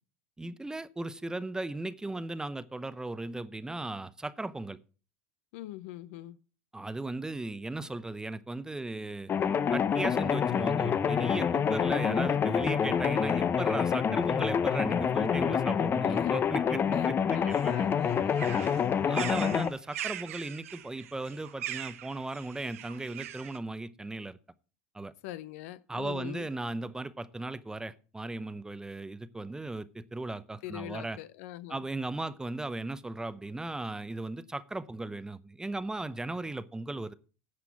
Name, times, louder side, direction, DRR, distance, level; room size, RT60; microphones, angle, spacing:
voice 1, 0.4-4.8 6.7-9.3 9.7-17.9 19.1-24.4 24.9-25.1 25.9-31.2 31.7-37.1, right 2 dB, 10° right, 0.7 m, -37 dB
voice 2, 5.5-6.4 16.1-16.3 16.9-18.9 25.2-26.5 30.6-31.8, left 15 dB, 75° left, 0.7 m, -43 dB
sound 1, 9.3-19.7, left 7 dB, 30° left, 0.7 m, -27 dB
sound 2, 17.5-23.6, right 12 dB, 85° right, 1.0 m, -41 dB
9.8 x 6.0 x 7.1 m
supercardioid pair, 100°, 7 cm